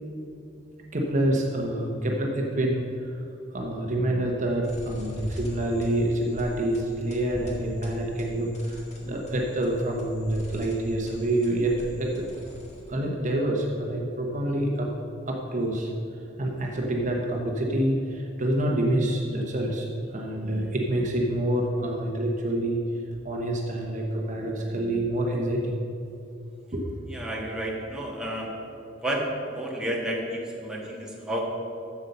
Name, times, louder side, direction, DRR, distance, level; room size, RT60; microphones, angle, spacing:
voice 1, 0.9-3.2 3.5-12.3 12.9-14.9 15.3-15.9 16.4-25.8 26.7-27.0, right 1 dB, 40° right, 0 dB, 1.0 m, -27 dB
sound 1, 4.6-13.0, equal, 40° left, 1.8 m, -40 dB
voice 2, 27.1-28.6 29.0-31.5, right 1 dB, 5° right, -3 dB, 1.5 m, -31 dB
8.1 x 7.1 x 6.7 m, 2.8 s
head